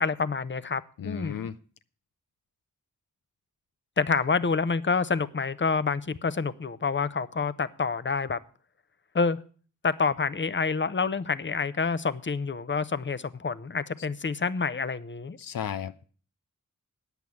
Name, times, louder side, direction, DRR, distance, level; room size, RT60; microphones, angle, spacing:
voice 1, 0.0-1.5 4.0-8.4 9.1-9.4 9.8-15.4, left 4 dB, 35° left, 0.7 m, -28 dB
voice 2, 1.0-1.5 15.4-16.0, left 9 dB, 80° left, 0.5 m, -34 dB
9.2 x 8.2 x 8.4 m
cardioid pair, 45°, 33 cm